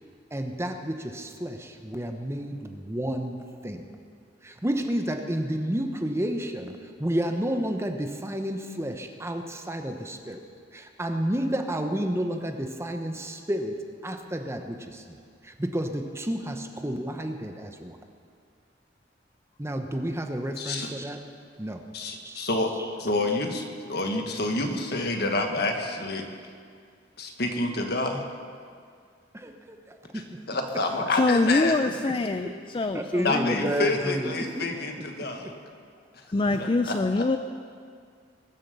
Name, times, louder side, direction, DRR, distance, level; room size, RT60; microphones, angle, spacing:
voice 1, 0.3-3.4 3.6-3.8 4.4-10.4 10.7-13.7 14.0-15.2 15.4-18.0 19.6-21.2 21.6-21.8 22.2-22.5 29.3-30.4 32.0-32.2 32.9-34.7, equal, 15° right, 5 dB, 0.9 m, -31 dB
voice 2, 20.6-20.9 21.9-26.2 27.2-28.2 30.1-31.7 33.2-35.6 36.6-37.2, left 2 dB, 60° left, 4 dB, 1.5 m, -28 dB
voice 3, 31.1-33.7 36.3-37.4, left 2 dB, 25° left, 9 dB, 0.4 m, -25 dB
22.0 x 7.5 x 6.8 m, 2.1 s
head